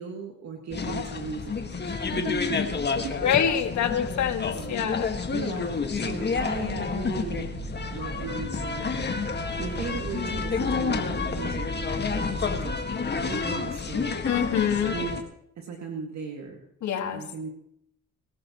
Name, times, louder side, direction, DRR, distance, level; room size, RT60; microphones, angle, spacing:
voice 1, 0.0-3.3 4.4-4.9 5.3-7.5 7.9-8.9 9.6-12.7 13.0-14.2 14.9-15.2 15.6-16.6 17.1-17.5, right 5 dB, 65° right, 1 dB, 2.3 m, -37 dB
sound 1, 0.7-15.2, left 5 dB, 35° left, 1.9 m, -30 dB
voice 2, 3.2-5.1 14.3-15.0 16.8-17.2, left 9 dB, 70° left, 6 dB, 2.0 m, -26 dB
sound 2, 6.3-12.8, right 2 dB, 35° right, 2.8 m, -38 dB
23.5 x 13.5 x 3.1 m, 0.75 s
cardioid pair, 90°, 30 cm